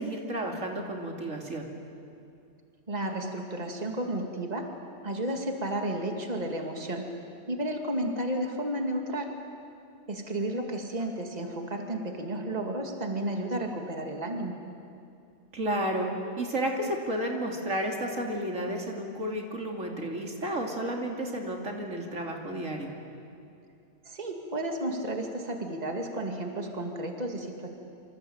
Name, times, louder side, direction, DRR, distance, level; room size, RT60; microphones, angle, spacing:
voice 1, 0.0-1.7 15.5-16.1 16.4-22.9, right 1 dB, 80° right, 1 dB, 3.3 m, -32 dB
voice 2, 2.9-4.7 5.0-7.1 7.5-9.3 10.1-14.6 24.0-27.7, right 1 dB, 35° right, 3 dB, 2.4 m, -32 dB
27.0 x 25.5 x 8.7 m, 2.6 s
omnidirectional pair, 1.3 m